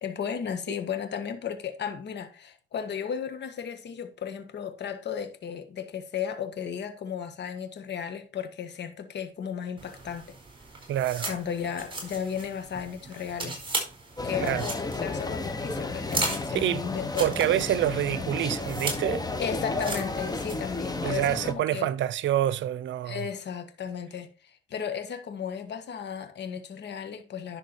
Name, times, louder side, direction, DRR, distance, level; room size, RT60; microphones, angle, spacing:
voice 1, 0.0-10.4 11.2-13.6 14.2-17.3 19.4-21.9 23.0-27.6, left 7 dB, 60° left, 1.6 m, -34 dB
sound 1, 9.8-21.1, right 3 dB, 25° right, 4.4 m, -37 dB
voice 2, 10.9-11.4 14.4-14.7 16.5-16.8 17.2-19.3 21.0-23.3, right 12 dB, 70° right, 0.7 m, -27 dB
sound 2, 14.2-21.5, left 3 dB, 20° left, 1.3 m, -33 dB
11.0 x 6.1 x 4.3 m
cardioid pair, 90°, 20 cm